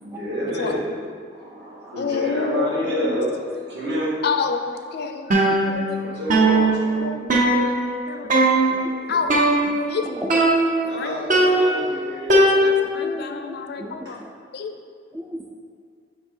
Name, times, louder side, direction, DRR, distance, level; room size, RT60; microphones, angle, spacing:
voice 1, 0.0-1.0 1.3-4.2 5.9-7.2 10.8-12.8 14.1-14.2, equal, 60° right, -5 dB, 1.6 m, -29 dB
voice 2, 2.0-3.1 4.2-5.3 5.7-6.0 7.0-7.8 8.1-8.3 9.1-9.5 9.8-10.0 10.9-11.2 12.4-14.2 14.5-14.7, left 5 dB, 60° left, 5 dB, 0.5 m, -28 dB
voice 3, 5.3-5.9 8.2-8.4 8.7-9.7 10.0-10.5 13.0-14.3 15.1-15.5, equal, 15° right, -1 dB, 0.4 m, -36 dB
sound 1, 5.3-6.0 6.3-8.0 8.3-8.9 9.3-10.0 10.3-10.9 11.3-13.0, right 1 dB, 45° right, 0.8 m, -19 dB
6.5 x 4.9 x 3.7 m, 2.1 s
head